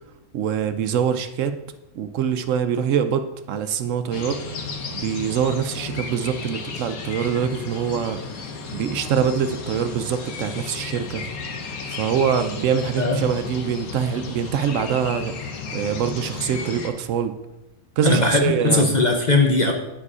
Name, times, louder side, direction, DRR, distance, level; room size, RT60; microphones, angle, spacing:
voice 1, 0.3-1.5 2.0-4.4 4.9-8.2 8.7-11.2 11.9-15.3 15.7-17.3 18.0-18.9, right 8 dB, 70° right, 9 dB, 0.9 m, -24 dB
sound 1, 4.1-16.9, left 4 dB, 90° left, 1.4 m, -33 dB
voice 2, 18.0-19.7, left 2 dB, 40° left, 2 dB, 0.7 m, -19 dB
9.4 x 4.9 x 4.8 m, 0.99 s
omnidirectional pair, 1.5 m